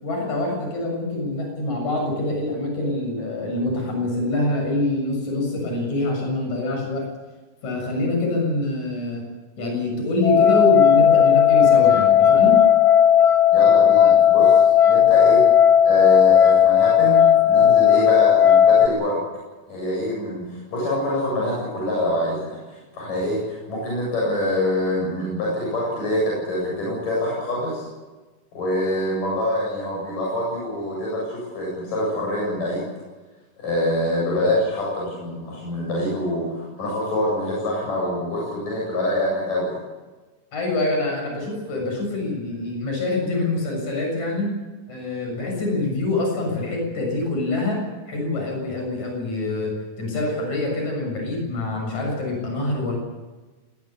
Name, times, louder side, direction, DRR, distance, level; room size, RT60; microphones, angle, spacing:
voice 1, 0.0-7.1 7.6-9.2 9.6-12.6 40.5-44.5 44.9-53.0, left 2 dB, 60° left, 1 dB, 8.4 m, -25 dB
sound 1, 10.2-18.9, left 9 dB, 45° left, 1.3 m, -15 dB
voice 2, 13.5-14.6 14.9-15.4 15.8-19.2 19.7-27.8 28.5-32.9 33.6-39.8, left 1 dB, 85° left, -4 dB, 9.6 m, -25 dB
21.0 x 19.0 x 8.5 m, 1.2 s
omnidirectional pair, 3.7 m